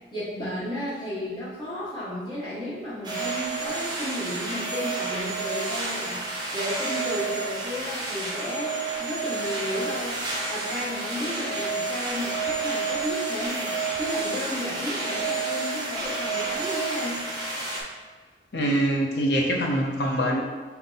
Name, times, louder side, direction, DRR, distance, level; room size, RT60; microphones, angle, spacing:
voice 1, 0.1-17.2, equal, 25° left, -10 dB, 1.4 m, -33 dB
sound 1, 3.0-17.8, right 3 dB, 25° right, 0.7 m, -30 dB
voice 2, 18.5-20.4, right 1 dB, 65° left, 0 dB, 0.7 m, -24 dB
3.8 x 2.8 x 3.9 m, 1.5 s
head